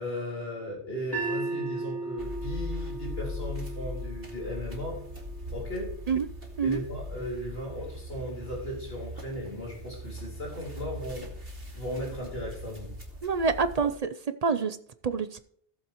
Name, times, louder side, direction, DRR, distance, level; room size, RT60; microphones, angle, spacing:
voice 1, 0.0-5.0 5.5-5.9 6.6-11.3 11.7-12.9, equal, 70° left, -3 dB, 4.2 m, -36 dB
sound 1, 1.1-7.3, right 3 dB, 20° left, 3.3 m, -38 dB
sound 2, 2.2-13.9, left 1 dB, 65° right, 2.6 m, -40 dB
voice 2, 13.2-14.1 14.4-14.8 15.0-15.4, right 5 dB, 45° right, 11 dB, 0.6 m, -26 dB
17.5 x 7.4 x 3.0 m, 0.63 s
omnidirectional pair, 1.1 m